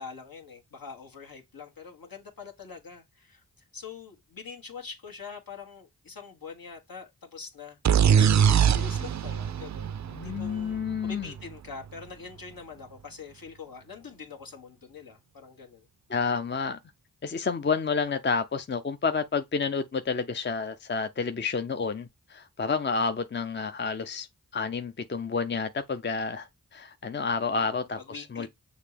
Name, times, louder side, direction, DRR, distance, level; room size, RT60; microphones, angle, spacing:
voice 1, 0.0-3.4 3.7-7.8 8.4-10.0 10.2-15.9 27.5-28.5, left 5 dB, 70° left, 1.6 m, -44 dB
sound 1, 7.8-11.5, right 8 dB, 55° right, 0.4 m, -23 dB
voice 2, 10.1-11.3 16.1-16.8 17.2-24.3 24.5-28.5, left 5 dB, 30° left, 0.5 m, -30 dB
6.5 x 2.9 x 5.0 m
cardioid pair, 50°, 36 cm